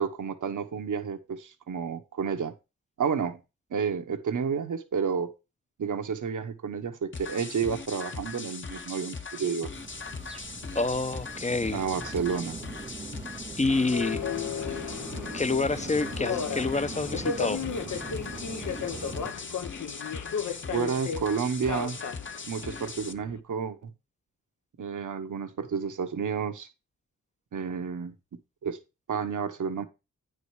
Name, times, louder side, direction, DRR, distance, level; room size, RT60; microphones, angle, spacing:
voice 1, 0.0-2.5 3.0-3.4 3.7-5.3 5.8-9.7 11.7-12.6 20.7-22.0 22.5-23.9 24.8-26.7 27.5-28.1 28.6-28.8 29.1-29.8, right 6 dB, 70° right, 1.2 m, -30 dB
sound 1, 7.1-23.1, left 4 dB, 35° left, 1.0 m, -40 dB
sound 2, 9.7-19.3, right 4 dB, 20° right, 0.4 m, -42 dB
voice 2, 10.7-11.8 13.6-14.2 15.3-17.6, left 3 dB, 20° left, 0.7 m, -27 dB
Subway metro underground, 13.7-23.4, left 7 dB, 65° left, 0.8 m, -35 dB
9.2 x 5.0 x 4.8 m
cardioid pair, 50°, 32 cm